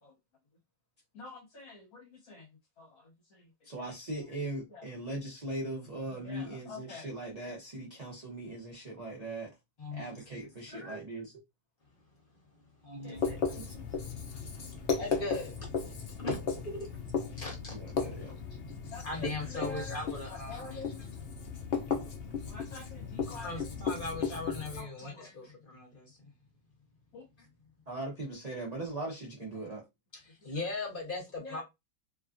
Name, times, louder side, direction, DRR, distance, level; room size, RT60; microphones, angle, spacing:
voice 1, 1.1-2.5 2.8-3.5 4.7-4.9 6.1-7.1 10.6-11.0 13.0-13.4 18.9-20.0 20.3-21.0 22.4-23.7 24.1-24.2 24.8-25.3 27.1-27.3 29.6-29.7 30.5-30.6 31.4-31.6, left 3 dB, 60° left, 1.3 m, -47 dB
voice 2, 3.6-9.5 9.9-11.3 13.0-13.2 13.5-13.9 17.7-18.3 19.4-19.5 27.9-29.8, right 2 dB, 50° right, 0.4 m, -40 dB
voice 3, 9.8-10.2 12.8-13.3 15.0-15.5 16.2-16.9 17.4-17.7 18.0-18.1 19.0-20.8 23.3-26.1 30.4-31.6, left 2 dB, 35° left, 1.2 m, -39 dB
Writing, 13.1-24.8, left 5 dB, 85° left, 0.5 m, -36 dB
3.0 x 2.3 x 2.5 m
omnidirectional pair, 1.9 m